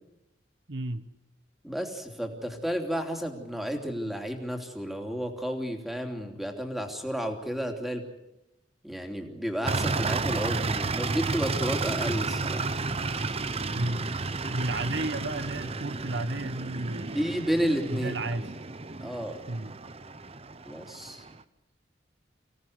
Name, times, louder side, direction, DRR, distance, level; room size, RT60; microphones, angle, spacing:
voice 1, 0.7-1.0 13.7-14.1 14.5-17.3 17.9-18.5 19.5-19.7, right 2 dB, 65° right, 12 dB, 1.1 m, -32 dB
voice 2, 1.6-8.0 8.8-12.8 17.1-18.1 19.0-19.4 20.6-21.2, equal, ahead, 4 dB, 3.0 m, -32 dB
sound 1, 9.6-21.4, right 3 dB, 35° right, 0.9 m, -32 dB
25.5 x 17.0 x 8.0 m, 0.95 s
head